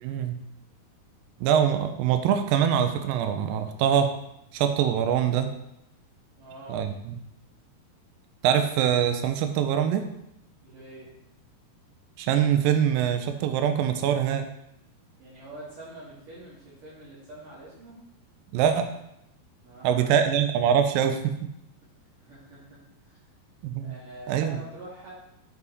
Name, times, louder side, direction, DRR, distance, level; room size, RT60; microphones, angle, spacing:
voice 1, 0.0-0.4 1.4-4.1 4.5-5.5 6.7-6.9 8.4-10.0 12.2-14.5 18.5-18.9 19.8-21.3 23.6-23.9 24.3-24.6, right 9 dB, 90° right, 7 dB, 2.0 m, -23 dB
voice 2, 6.4-6.9 10.6-11.1 15.2-18.0 19.6-20.3 22.2-23.2 23.8-25.1, right 1 dB, 55° right, -8 dB, 3.5 m, -45 dB
10.5 x 5.6 x 4.0 m, 0.81 s
omnidirectional pair, 4.7 m